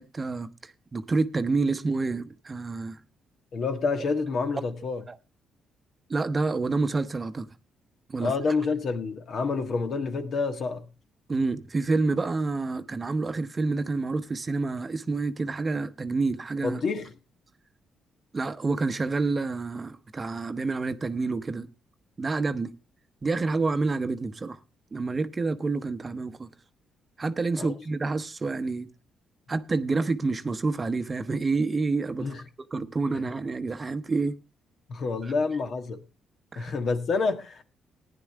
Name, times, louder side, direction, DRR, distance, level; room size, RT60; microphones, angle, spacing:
voice 1, 0.0-3.0 5.1-5.2 6.1-7.5 8.1-8.3 11.3-16.8 18.3-21.7 22.2-22.7 23.2-24.6 24.9-26.5 27.2-28.9 29.5-32.3 32.7-34.4 35.2-35.3 36.5-36.7, right 3 dB, 30° right, 0.8 m, -28 dB
voice 2, 3.5-5.0 8.2-10.9 16.6-17.1 27.6-27.7 32.2-32.4 34.9-36.0 36.5-37.6, left 4 dB, 55° left, 1.5 m, -28 dB
15.5 x 10.0 x 3.4 m
cardioid pair, 90°, 0 cm